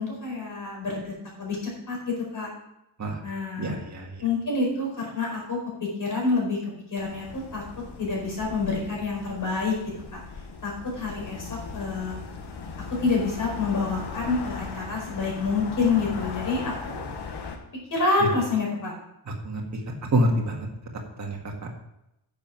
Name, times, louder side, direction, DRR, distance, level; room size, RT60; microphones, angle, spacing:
voice 1, 0.0-1.6 1.9-2.5 3.2-3.8 4.2-5.6 6.0-6.6 6.9-7.6 8.0-9.7 10.1-10.2 10.6-12.1 13.0-17.0 17.9-18.9, left 3 dB, 45° left, -2 dB, 4.8 m, -27 dB
voice 2, 3.6-4.2 18.2-18.3 19.3-19.6 20.0-20.7 21.2-21.5, right 1 dB, 40° right, 0 dB, 1.8 m, -26 dB
sound 1, 7.0-17.6, left 4 dB, 60° left, 1.4 m, -38 dB
10.0 x 7.0 x 5.9 m, 0.86 s
wide cardioid pair, 180°, 44 cm